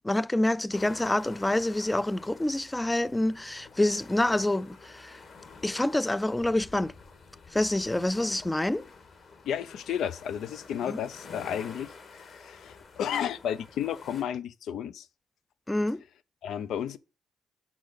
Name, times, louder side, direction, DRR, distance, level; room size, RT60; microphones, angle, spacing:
voice 1, 0.0-5.2 5.6-6.9 7.5-8.8 10.9-11.0 15.7-16.0, left 1 dB, 10° left, 0.4 m, -27 dB
sound 1, 0.7-14.2, left 4 dB, 50° left, 2.2 m, -49 dB
voice 2, 9.4-15.1 16.4-17.0, left 9 dB, 75° left, 0.6 m, -33 dB
6.0 x 5.3 x 6.8 m
cardioid pair, 90°, 0 cm